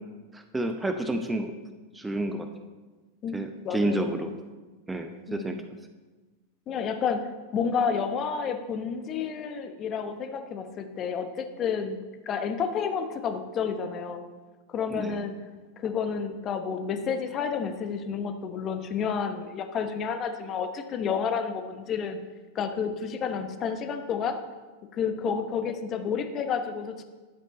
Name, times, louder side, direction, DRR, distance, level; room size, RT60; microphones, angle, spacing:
voice 1, 0.3-1.5 1.9-2.5 3.3-4.3 4.9-5.6 14.9-15.2, right 1 dB, 10° right, 7 dB, 0.6 m, -30 dB
voice 2, 3.6-4.2 5.3-5.5 6.7-12.0 12.3-14.2 14.7-15.3 15.8-22.2 22.5-24.4 24.9-27.0, left 6 dB, 30° left, 8 dB, 0.9 m, -30 dB
10.5 x 7.6 x 4.1 m, 1.3 s
figure-of-eight pair, 90°, 0 cm